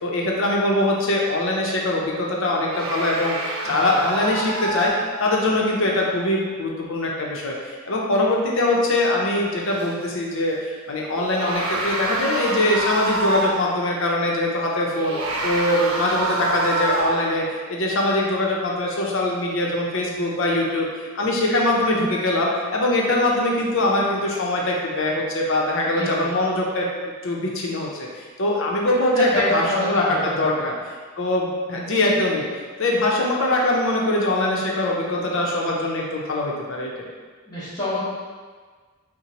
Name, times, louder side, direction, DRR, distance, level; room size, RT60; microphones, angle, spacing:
voice 1, 0.0-3.3 3.6-4.9 5.2-15.1 15.4-30.7 31.2-32.4 32.8-37.1, left 1 dB, 65° left, -2 dB, 0.7 m, -22 dB
sound 1, 2.7-5.5 9.7-9.9 11.1-13.8 14.9-17.4, right 2 dB, 80° right, 0.6 m, -27 dB
voice 2, 3.7-4.1 25.8-26.2 29.1-30.3 30.6-30.7 37.5-38.0, left 1 dB, 20° left, -14 dB, 1.3 m, -27 dB
5.9 x 2.2 x 2.9 m, 1.5 s
head